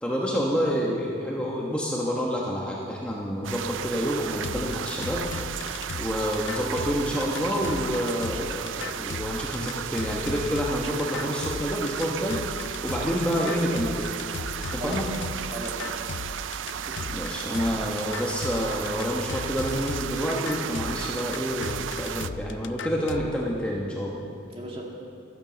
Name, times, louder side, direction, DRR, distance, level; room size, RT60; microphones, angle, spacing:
voice 1, 0.0-5.7 5.9-14.1 14.7-15.1 17.1-24.2, equal, 5° left, -3 dB, 1.1 m, -28 dB
sound 1, 3.4-22.3, right 8 dB, 85° right, 0.4 m, -34 dB
sound 2, 4.4-23.3, left 5 dB, 75° left, 0.4 m, -37 dB
voice 2, 15.5-16.0 16.8-17.4 24.5-24.8, right 1 dB, 30° right, -2 dB, 2.0 m, -38 dB
12.0 x 11.0 x 7.2 m, 2.5 s
head